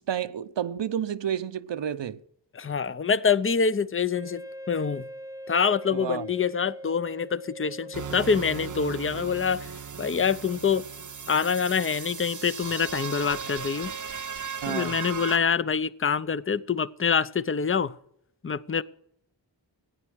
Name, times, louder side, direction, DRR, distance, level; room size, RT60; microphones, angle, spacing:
voice 1, 0.0-2.2 5.9-6.3 14.6-15.0, right 9 dB, 75° right, 0.8 m, -30 dB
voice 2, 2.5-4.4 4.7-5.0 5.5-9.7 10.0-10.9 11.3-13.9 14.7-17.9 18.4-18.8, left 6 dB, 30° left, 0.7 m, -25 dB
Wind instrument woodwind instrument, 4.1-9.2, equal, 10° right, 0.7 m, -42 dB
sound 1, 7.9-15.4, right 7 dB, 45° right, 0.8 m, -37 dB
15.0 x 9.7 x 6.4 m
cardioid pair, 40°, 44 cm